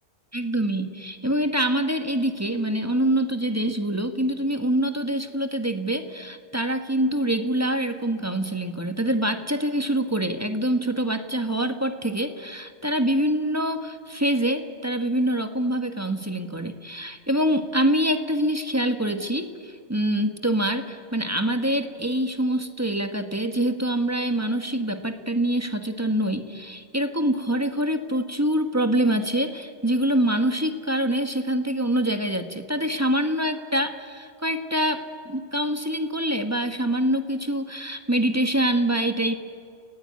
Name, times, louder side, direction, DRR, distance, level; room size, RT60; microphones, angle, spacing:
voice 1, 0.3-39.3, right 1 dB, 15° right, 7 dB, 1.2 m, -25 dB
29.5 x 17.0 x 9.5 m, 2.2 s
omnidirectional pair, 1.2 m